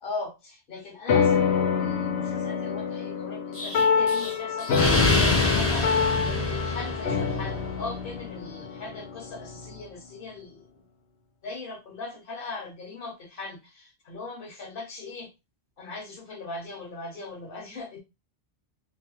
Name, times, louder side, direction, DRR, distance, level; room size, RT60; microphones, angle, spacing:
voice 1, 0.0-10.8 11.4-15.3 15.8-18.0, left 3 dB, 60° left, 1.1 m, -39 dB
sound 1, 1.1-9.8, left 6 dB, 85° left, 0.9 m, -26 dB
Explosion, 3.5-7.4, left 2 dB, 15° left, 0.5 m, -27 dB
2.7 x 2.2 x 2.9 m
omnidirectional pair, 1.1 m